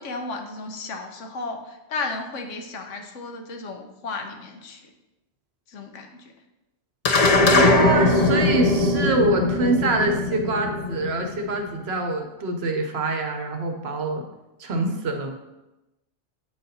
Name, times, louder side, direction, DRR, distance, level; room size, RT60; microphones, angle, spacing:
voice 1, 0.0-4.8 5.7-6.2, left 3 dB, 75° left, 4 dB, 1.1 m, -34 dB
sound 1, 7.0-11.7, left 2 dB, 45° left, 0.5 m, -20 dB
voice 2, 7.5-14.2 14.6-15.3, right 2 dB, 60° right, 4 dB, 0.9 m, -25 dB
7.8 x 4.0 x 4.0 m, 0.98 s
omnidirectional pair, 1.3 m